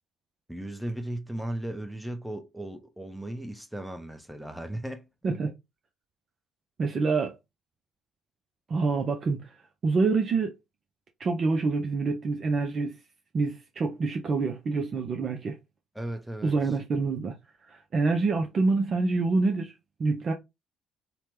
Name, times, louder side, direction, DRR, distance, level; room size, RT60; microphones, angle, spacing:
voice 1, 0.5-5.1 15.9-16.5, right 1 dB, ahead, 0.6 m, -36 dB
voice 2, 6.8-7.4 8.7-9.4 9.8-10.5 11.2-13.0 13.3-15.6 16.4-17.3 17.7-19.7 20.0-20.3, right 4 dB, 45° right, 0.5 m, -26 dB
2.8 x 2.1 x 3.2 m
hypercardioid pair, 50°, 0 cm